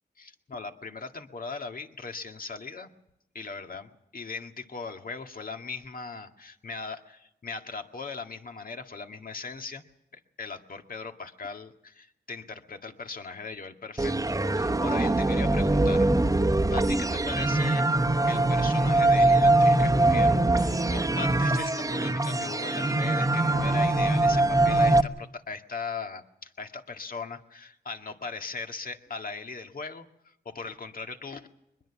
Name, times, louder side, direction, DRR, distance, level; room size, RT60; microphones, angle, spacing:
voice 1, 0.2-2.9 3.3-9.8 10.1-16.1 16.7-17.9 18.3-31.5, left 4 dB, 55° left, 5 dB, 1.9 m, -39 dB
sound 1, 14.0-25.0, right 2 dB, 20° right, 1.2 m, -23 dB
23.0 x 21.5 x 7.2 m, 0.81 s
wide cardioid pair, 90°, 18 cm